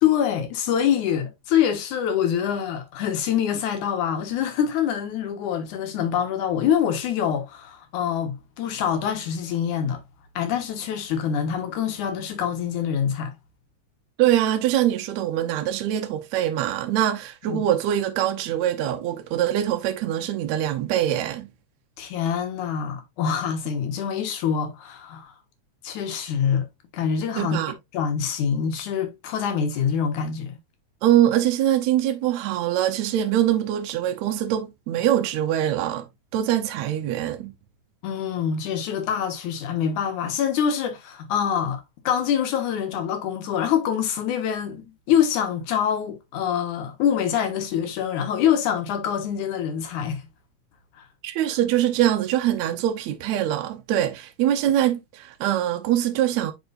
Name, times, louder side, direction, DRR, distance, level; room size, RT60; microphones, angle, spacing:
voice 1, 0.0-10.0 10.4-13.3 17.5-17.6 22.0-25.3 25.8-26.7 26.9-27.6 27.9-30.6 38.0-50.3, left 8 dB, 85° left, 2.8 m, -25 dB
voice 2, 14.2-21.5 27.4-27.7 31.0-37.5 51.2-56.5, right 11 dB, 75° right, 2.0 m, -23 dB
9.4 x 4.5 x 2.5 m
omnidirectional pair, 3.4 m